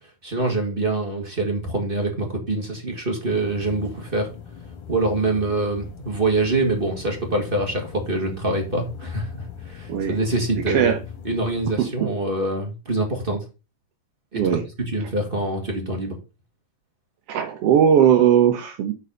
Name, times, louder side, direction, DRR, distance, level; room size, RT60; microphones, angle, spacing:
voice 1, 0.2-4.3 4.9-10.9 11.2-13.4 14.3-14.4 14.9-16.2, right 2 dB, 20° right, 1.7 m, -25 dB
sound 1, 3.2-11.8, left 7 dB, 80° left, 2.8 m, -41 dB
voice 2, 10.7-11.0 11.8-11.9 14.3-14.6 17.3-18.9, right 9 dB, 65° right, 1.6 m, -18 dB
6.9 x 4.8 x 6.1 m
omnidirectional pair, 3.5 m